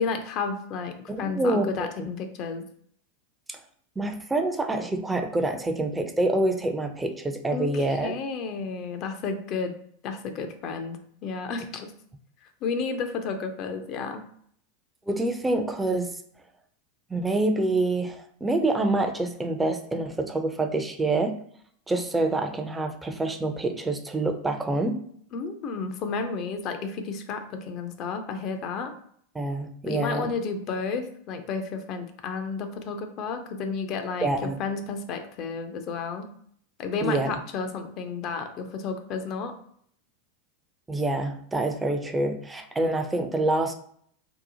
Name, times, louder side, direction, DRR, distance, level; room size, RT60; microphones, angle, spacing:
voice 1, 0.0-2.6 7.5-9.7 10.0-11.9 12.6-14.3 25.3-28.9 29.9-36.3 36.8-39.5, left 5 dB, 45° left, 7 dB, 0.4 m, -32 dB
voice 2, 1.1-1.7 3.5-3.6 4.0-8.1 15.1-16.1 17.1-21.3 21.9-25.0 29.3-30.3 34.2-34.6 37.0-37.4 40.9-43.7, right 2 dB, 10° right, 6 dB, 0.4 m, -26 dB
2.7 x 2.0 x 2.7 m, 0.63 s
hypercardioid pair, 90°, 0 cm